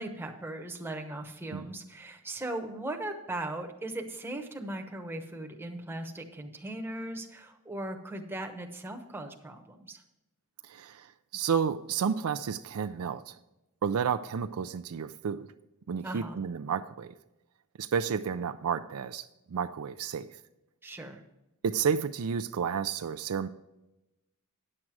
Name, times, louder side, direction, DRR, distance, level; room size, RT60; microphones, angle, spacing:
voice 1, 0.0-10.0 16.0-16.4 20.8-21.2, right 1 dB, 10° right, 2 dB, 0.9 m, -38 dB
voice 2, 10.6-13.3 13.8-15.5 15.9-17.1 17.8-20.4 21.6-23.5, right 7 dB, 70° right, 9 dB, 0.4 m, -31 dB
9.8 x 7.6 x 4.7 m, 0.94 s
head